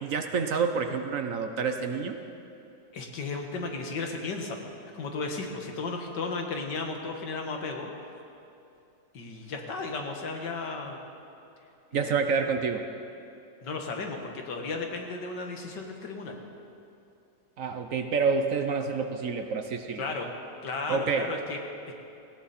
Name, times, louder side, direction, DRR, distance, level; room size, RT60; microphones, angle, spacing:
voice 1, 0.0-2.2 11.9-12.8 17.6-20.1 20.9-21.3, right 5 dB, 60° right, 6 dB, 1.1 m, -28 dB
voice 2, 2.9-7.9 9.1-11.0 11.9-12.1 13.6-16.4 20.0-20.3 20.6-21.9, left 3 dB, 80° left, 2 dB, 2.1 m, -34 dB
18.0 x 16.5 x 4.3 m, 2.7 s
omnidirectional pair, 1.8 m